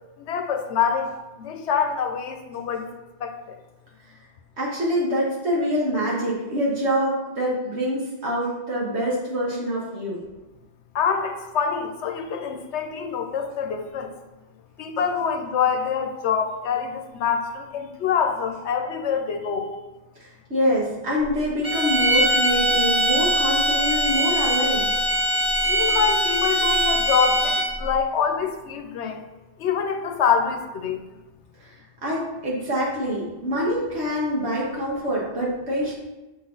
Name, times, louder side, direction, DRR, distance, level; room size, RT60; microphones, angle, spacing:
voice 1, 0.3-1.1 1.4-2.9 3.2-3.4 10.9-14.1 14.8-19.7 25.7-29.2 29.6-31.0, left 6 dB, 85° left, 5 dB, 1.0 m, -25 dB
voice 2, 4.6-10.2 20.2-24.9 31.6-31.7 32.0-35.9, equal, 75° right, -5 dB, 1.5 m, -25 dB
sound 1, 21.6-27.9, right 1 dB, 5° right, 1.2 m, -22 dB
6.4 x 4.1 x 3.8 m, 1.1 s
omnidirectional pair, 1.1 m